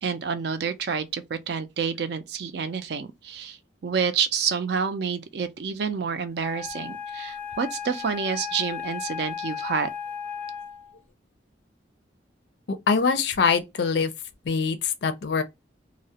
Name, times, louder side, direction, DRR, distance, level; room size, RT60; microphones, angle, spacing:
voice 1, 0.0-9.9, right 6 dB, 60° right, 0.4 m, -28 dB
Wind instrument woodwind instrument, 6.4-11.0, left 7 dB, 10° left, 0.4 m, -35 dB
voice 2, 12.7-14.1 14.5-15.4, left 5 dB, 65° left, 0.4 m, -23 dB
2.3 x 2.0 x 2.7 m
head